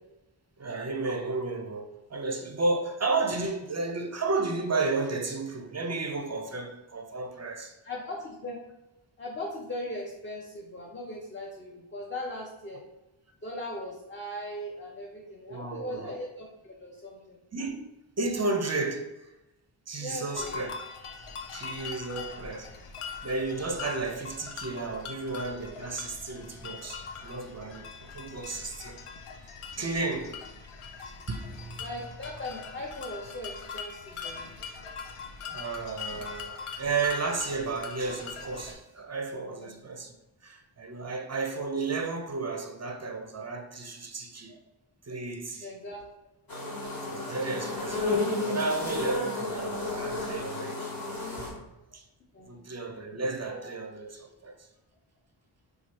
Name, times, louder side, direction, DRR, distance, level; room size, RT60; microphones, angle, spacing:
voice 1, 0.6-7.8 15.5-16.1 17.5-17.9 18.2-19.3 19.9-20.7 21.5-22.7 23.0-29.0 29.8-30.4 31.3-31.8 35.5-40.2 40.4-44.5 45.1-45.7 46.8-51.1 51.4-51.5 51.9-52.0 52.4-54.7, right 3 dB, 35° right, 0.4 m, -33 dB
voice 2, 7.8-8.6 9.2-12.8 13.4-17.4 20.0-20.6 21.5-21.7 31.8-34.5 39.4-39.8 45.6-46.0 46.5-46.7 52.3-52.6, left 1 dB, 25° left, 0.5 m, -39 dB
sound 1, 20.3-38.7, left 5 dB, 85° left, 0.6 m, -42 dB
sound 2, 46.5-51.5, left 2 dB, 45° left, 1.3 m, -32 dB
3.0 x 2.4 x 4.0 m
wide cardioid pair, 65°, 49 cm